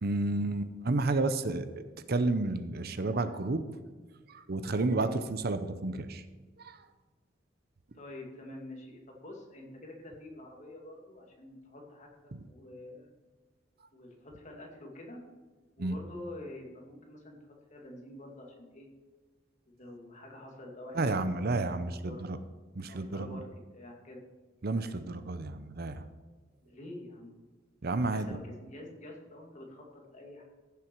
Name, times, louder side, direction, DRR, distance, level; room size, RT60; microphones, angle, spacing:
voice 1, 0.0-1.7 2.1-3.6 4.3-6.2 6.6-6.8 15.8-16.0 20.9-22.4 22.8-23.4 24.6-26.0 27.8-28.4, right 2 dB, 55° right, 11 dB, 0.7 m, -31 dB
voice 2, 7.9-13.1 13.9-15.2 15.8-18.9 19.7-22.4 22.9-23.4 23.7-24.2 26.6-27.3 27.9-30.4, left 1 dB, 40° left, 0 dB, 2.4 m, -47 dB
15.0 x 6.9 x 4.6 m, 1.4 s
head